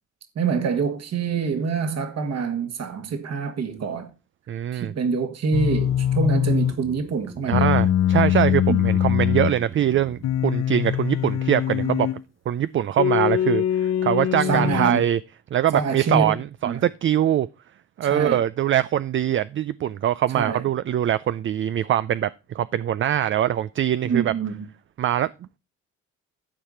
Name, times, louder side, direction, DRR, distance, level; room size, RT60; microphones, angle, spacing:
voice 1, 0.4-4.1 4.7-7.7 8.7-8.8 14.4-15.0 15.7-16.4 16.6-16.8 18.0-18.5 20.3-20.6 24.0-24.5, right 5 dB, 60° right, 2.0 m, -25 dB
voice 2, 4.5-4.9 7.5-12.1 12.5-15.2 15.5-17.5 18.0-24.3 25.0-25.3, right 11 dB, 40° right, 0.4 m, -23 dB
sound 1, 5.5-6.8 7.5-9.6 10.2-12.2 13.0-15.0, left 11 dB, 60° left, 0.6 m, -22 dB
sound 2, 5.6-12.0 12.3-12.4, right 4 dB, 20° right, 0.9 m, -43 dB
12.5 x 4.8 x 5.5 m
cardioid pair, 90°, 30 cm